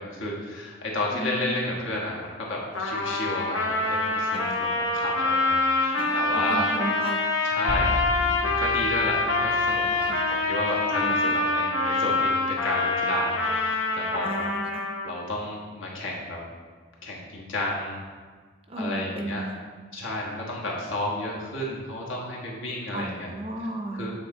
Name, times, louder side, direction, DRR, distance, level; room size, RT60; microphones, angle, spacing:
voice 1, 0.0-6.7 7.4-14.4 15.0-16.4 17.0-18.0 18.8-19.5 19.9-23.3 23.9-24.1, left 1 dB, 70° left, -3 dB, 1.3 m, -32 dB
voice 2, 1.1-1.6 4.3-4.7 5.9-7.2 10.0-10.3 11.0-11.4 14.2-14.9 18.7-19.6 22.9-24.1, right 1 dB, 25° right, 2 dB, 0.5 m, -34 dB
Trumpet, 2.7-15.2, left 2 dB, 90° left, 0.8 m, -25 dB
sound 1, 7.7-10.2, right 1 dB, 90° right, 0.7 m, -33 dB
8.0 x 3.9 x 3.7 m, 1.5 s
head